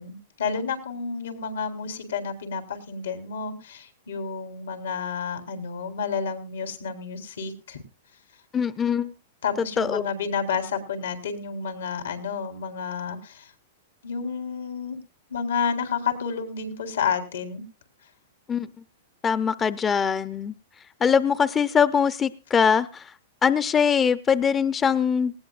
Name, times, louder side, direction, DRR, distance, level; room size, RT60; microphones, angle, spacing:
voice 1, 0.0-7.8 9.4-13.5 14.0-15.0 15.3-17.6, left 6 dB, 85° left, 7 dB, 3.9 m, -30 dB
voice 2, 8.5-9.1 9.8-10.0 18.5-18.7 19.2-20.5 21.0-23.1 23.4-25.3, left 7 dB, 20° left, 14 dB, 0.6 m, -22 dB
19.5 x 16.5 x 2.5 m, 0.31 s
hypercardioid pair, 135°, 0 cm